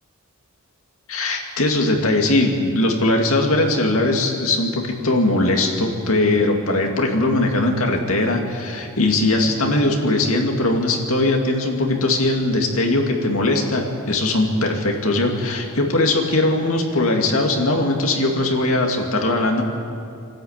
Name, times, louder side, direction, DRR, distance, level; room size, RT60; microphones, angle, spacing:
voice 1, 1.1-19.6, left 2 dB, 70° left, 2 dB, 2.6 m, -20 dB
25.5 x 12.5 x 8.9 m, 2.5 s
head